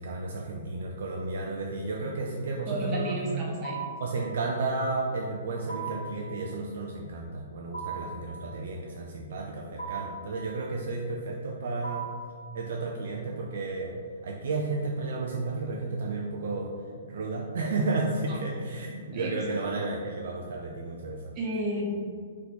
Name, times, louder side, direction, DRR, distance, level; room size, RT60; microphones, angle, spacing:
voice 1, 0.0-3.4 4.0-12.1 12.5-14.0 14.2-16.7 17.0-21.3, right 3 dB, 55° right, -1 dB, 0.3 m, -32 dB
voice 2, 2.7-3.8 19.1-19.3 21.4-21.9, equal, 25° right, -2 dB, 0.9 m, -32 dB
sound 1, 3.6-4.1 5.7-6.2 7.7-8.2 9.8-10.3 11.8-12.3, right 5 dB, 65° left, 0.7 m, -36 dB
3.6 x 2.8 x 3.7 m, 2.1 s
figure-of-eight pair, 115°, 0 cm